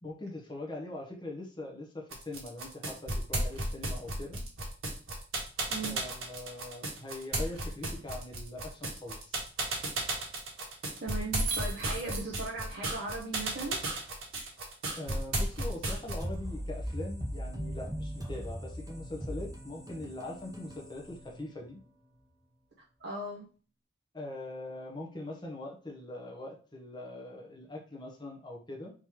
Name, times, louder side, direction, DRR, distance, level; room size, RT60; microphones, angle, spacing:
voice 1, 0.0-4.4 5.8-9.4 15.0-21.8 24.1-28.9, left 2 dB, 20° left, -1 dB, 0.9 m, -42 dB
sound 1, 2.1-16.3, right 1 dB, 90° right, 1.4 m, -33 dB
voice 2, 5.7-6.0 11.0-13.8 23.0-23.5, right 3 dB, 50° right, -4 dB, 0.8 m, -38 dB
sound 2, 16.2-21.8, equal, 20° right, 0.7 m, -39 dB
3.7 x 3.0 x 4.5 m, 0.38 s
head